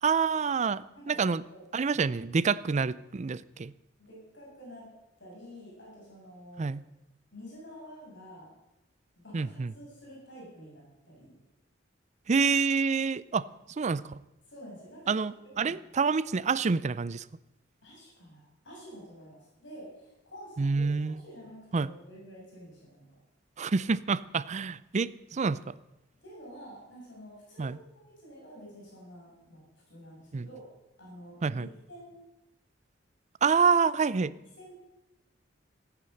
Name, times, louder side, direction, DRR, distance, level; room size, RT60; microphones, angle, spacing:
voice 1, 0.0-1.4 1.7-3.7 6.6-6.8 9.3-9.7 12.3-13.5 13.8-14.2 15.1-17.3 20.6-21.2 21.7-21.9 23.6-25.7 27.6-27.8 30.3-30.5 31.4-31.7 33.4-34.3, right 5 dB, 35° right, 18 dB, 0.4 m, -27 dB
voice 2, 4.0-4.9 5.2-6.6 7.3-8.5 9.2-11.4 14.5-15.8 17.8-23.1 26.2-30.6 31.0-32.2 34.6-34.7, equal, 70° left, -4 dB, 6.8 m, -49 dB
15.0 x 9.8 x 7.8 m, 0.95 s
head